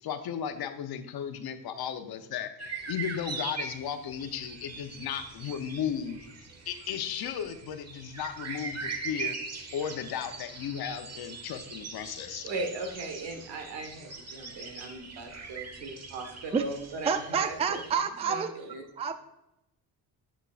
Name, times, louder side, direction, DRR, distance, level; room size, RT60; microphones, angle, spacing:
voice 1, 0.0-6.3 6.7-9.4 9.7-12.5, left 8 dB, 60° left, 8 dB, 0.9 m, -35 dB
sound 1, 2.6-17.9, right 4 dB, 35° right, 1.2 m, -41 dB
voice 2, 12.4-17.8 18.3-19.1, right 2 dB, 75° right, 6 dB, 1.6 m, -38 dB
voice 3, 17.1-18.5 19.0-19.1, right 6 dB, 15° right, 9 dB, 0.4 m, -28 dB
9.1 x 6.2 x 2.5 m, 0.89 s
cardioid pair, 85°, 42 cm